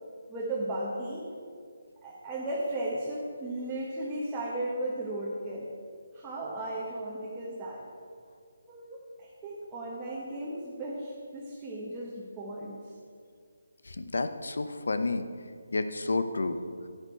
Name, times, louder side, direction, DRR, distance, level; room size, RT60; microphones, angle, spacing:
voice 1, 0.3-1.3 2.0-5.7 6.1-7.9 8.7-12.8, right 1 dB, 10° right, -7 dB, 1.4 m, -35 dB
voice 2, 13.8-15.3 15.7-16.6, left 3 dB, 75° left, 10 dB, 0.9 m, -30 dB
10.5 x 9.8 x 4.6 m, 2.2 s
figure-of-eight pair, 160°, 0 cm